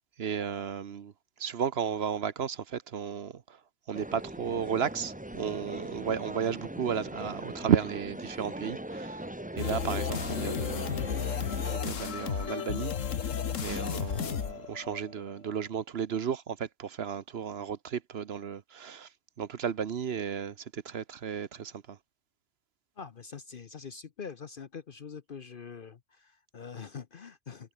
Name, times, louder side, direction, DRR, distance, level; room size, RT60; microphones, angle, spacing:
voice 1, 0.2-1.1 1.4-3.6 3.9-9.3 9.6-11.0 11.7-12.9 13.6-19.1 19.4-22.0, right 7 dB, 55° right, 1.0 m, -33 dB
sound 1, 3.9-11.8, right 1 dB, 5° right, 1.1 m, -40 dB
sound 2, 9.6-15.3, left 7 dB, 70° left, 1.6 m, -33 dB
voice 2, 23.0-27.7, left 6 dB, 45° left, 0.9 m, -44 dB
omnidirectional pair, 1.4 m